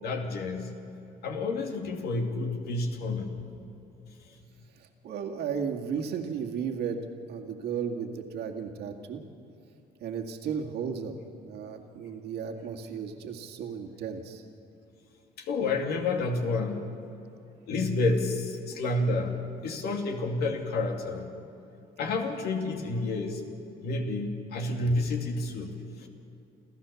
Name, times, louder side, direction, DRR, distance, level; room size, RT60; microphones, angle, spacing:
voice 1, 0.0-0.8 1.2-3.5 15.4-16.8 17.7-19.4 19.6-21.3 22.0-23.6 23.8-26.1, left 2 dB, 70° left, 3 dB, 2.5 m, -30 dB
voice 2, 5.0-7.0 7.3-9.2 10.0-11.1 11.4-14.4, right 7 dB, 75° right, 3 dB, 2.1 m, -34 dB
28.0 x 14.5 x 7.1 m, 2.8 s
cardioid pair, 110°, 17 cm